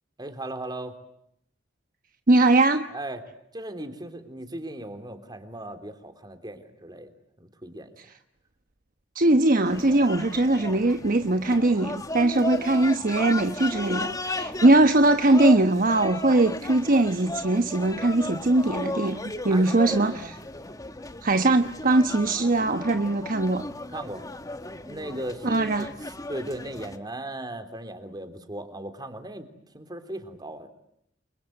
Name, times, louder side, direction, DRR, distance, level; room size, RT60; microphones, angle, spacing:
voice 1, 0.2-1.0 2.9-3.2 3.5-7.1 7.4-8.1 19.5-20.3 23.9-24.2 24.8-25.9 26.3-29.5 29.7-30.7, right 1 dB, 20° right, 8 dB, 3.5 m, -37 dB
voice 2, 2.3-2.9 9.1-20.1 21.2-23.6 25.4-25.9, right 2 dB, 50° right, 8 dB, 1.1 m, -21 dB
sound 1, 9.6-27.0, left 2 dB, 20° left, 1.6 m, -35 dB
30.0 x 24.0 x 8.0 m, 0.74 s
head